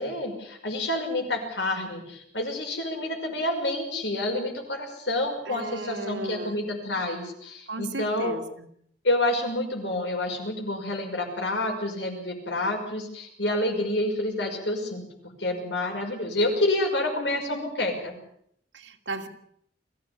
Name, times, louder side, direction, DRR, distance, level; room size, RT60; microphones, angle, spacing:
voice 1, 0.0-8.4 9.0-15.0 15.4-18.1, left 1 dB, 80° left, 4 dB, 5.8 m, -28 dB
voice 2, 5.4-6.6 7.7-8.7 18.7-19.3, right 2 dB, 90° right, 4 dB, 2.7 m, -35 dB
22.5 x 15.5 x 8.5 m, 0.70 s
head